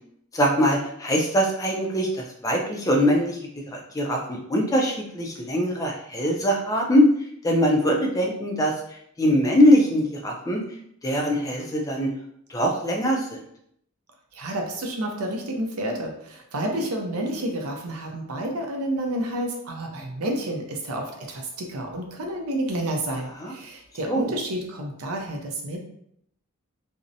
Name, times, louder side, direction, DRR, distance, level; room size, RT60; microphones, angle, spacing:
voice 1, 0.3-3.4 3.7-7.0 7.4-8.7 9.2-10.6 11.0-12.1 12.5-13.4 23.4-23.5 24.1-24.3, equal, 15° left, 0 dB, 0.3 m, -22 dB
voice 2, 14.3-25.8, right 1 dB, 80° right, 2 dB, 0.5 m, -30 dB
2.6 x 2.0 x 2.6 m, 0.72 s
head